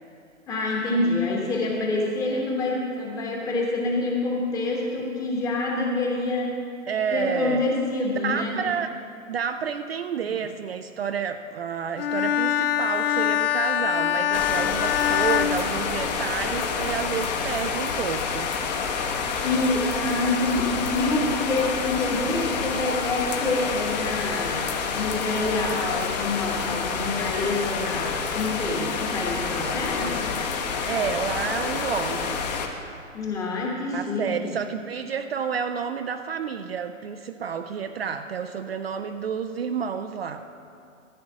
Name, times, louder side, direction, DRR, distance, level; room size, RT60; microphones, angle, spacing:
voice 1, 0.5-6.6 7.1-8.7 10.2-10.3 19.2-30.2 33.1-34.5, left 2 dB, 10° left, -2 dB, 1.1 m, -27 dB
voice 2, 6.9-7.6 8.2-8.9 9.3-18.5 30.9-32.5 33.9-40.4, right 7 dB, 50° right, 7 dB, 0.5 m, -30 dB
Bowed string instrument, 12.0-16.5, left 10 dB, 45° left, 0.5 m, -24 dB
sound 1, 14.3-32.7, left 5 dB, 30° left, 1.0 m, -28 dB
14.0 x 7.6 x 6.0 m, 2.5 s
hypercardioid pair, 155°, 41 cm